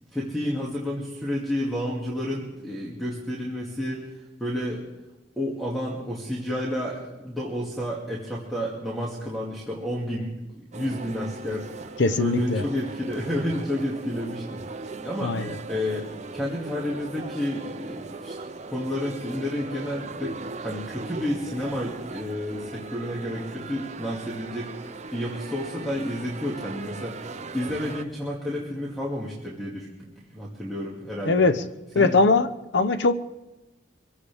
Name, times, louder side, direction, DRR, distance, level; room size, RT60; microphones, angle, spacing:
voice 1, 0.1-4.1 4.4-4.8 5.4-14.6 15.0-15.4 15.7-18.4 18.7-24.7 25.1-27.2 27.5-31.5 31.9-32.2, left 1 dB, ahead, -5 dB, 2.3 m, -30 dB
sound 1, 10.7-28.0, right 3 dB, 40° right, 0.7 m, -39 dB
voice 2, 12.0-12.6 15.2-15.5 31.3-31.6 31.9-32.5 32.7-33.2, left 3 dB, 70° left, 11 dB, 0.8 m, -20 dB
24.0 x 16.0 x 3.6 m, 1.0 s
head